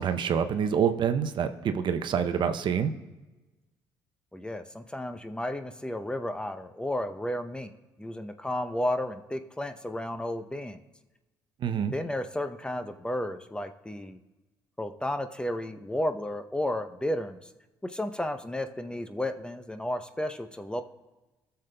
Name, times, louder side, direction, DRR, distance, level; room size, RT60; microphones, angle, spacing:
voice 1, 0.0-2.9 11.6-11.9, right 7 dB, 55° right, 9 dB, 0.6 m, -26 dB
voice 2, 4.3-7.7 8.0-10.8 11.9-14.2 14.8-17.4 17.8-20.8, left 1 dB, 10° left, 8 dB, 0.6 m, -32 dB
16.5 x 6.8 x 2.2 m, 1.1 s
hypercardioid pair, 55°, 10 cm